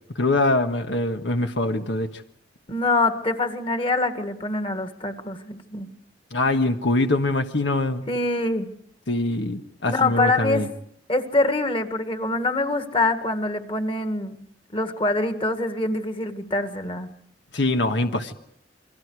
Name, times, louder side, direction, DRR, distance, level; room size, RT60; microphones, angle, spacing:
voice 1, 0.1-2.2 6.3-8.0 9.1-10.7 17.5-18.3, left 2 dB, 90° left, 6 dB, 1.5 m, -23 dB
voice 2, 2.7-5.9 8.1-8.7 9.9-10.7 11.1-14.4 14.7-17.1, left 2 dB, 30° left, 8 dB, 1.9 m, -24 dB
29.0 x 23.0 x 4.8 m, 0.67 s
head